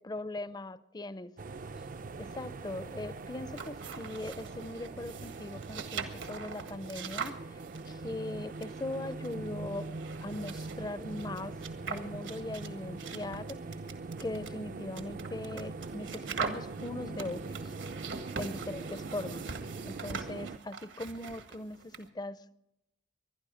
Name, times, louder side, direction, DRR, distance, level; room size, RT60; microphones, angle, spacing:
voice 1, 0.0-1.3 2.2-9.8 10.2-11.5 11.9-13.6 14.2-17.7 18.4-19.5 19.8-22.4, left 2 dB, 20° left, 0.5 m, -40 dB
sound 1, 1.4-20.6, right 3 dB, 45° right, 0.5 m, -42 dB
sound 2, 3.4-22.1, right 5 dB, 80° right, 1.7 m, -43 dB
20.5 x 12.0 x 5.0 m
head